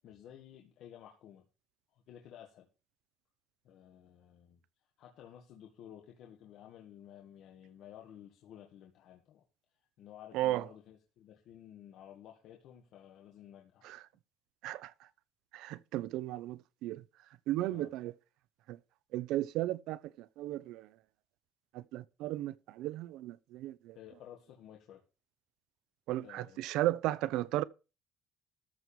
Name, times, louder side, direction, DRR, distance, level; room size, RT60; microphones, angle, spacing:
voice 1, 0.0-1.4 1.9-2.7 3.6-4.6 5.0-9.4 10.0-13.9 17.7-17.9 24.0-25.0 26.2-26.6, left 10 dB, 60° left, 1.8 m, -53 dB
voice 2, 10.3-10.7 13.8-14.0 14.6-14.9 15.5-17.0 17.5-18.1 18.7-18.8 19.1-20.9 21.7-24.0 26.1-27.6, right 15 dB, 90° right, 0.6 m, -35 dB
14.0 x 4.7 x 7.1 m
cardioid pair, 170°, 0 cm